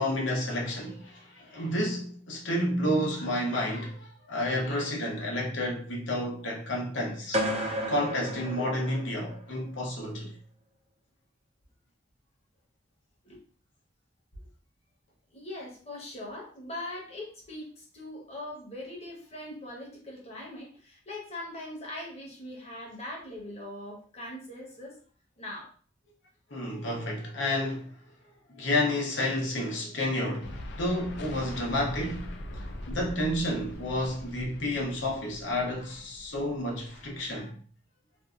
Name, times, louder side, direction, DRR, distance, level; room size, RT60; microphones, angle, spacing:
voice 1, 0.0-7.4 7.9-10.3 26.5-27.9 28.6-32.3 32.5-37.5, left 1 dB, 85° left, 0.8 m, -30 dB
sound 1, 7.3-9.4, equal, 35° right, 0.4 m, -32 dB
voice 2, 15.3-24.9 25.4-25.7, left 1 dB, 35° left, 0.9 m, -41 dB
sound 2, 30.4-37.4, left 1 dB, 65° left, 0.4 m, -42 dB
2.6 x 2.3 x 2.3 m
head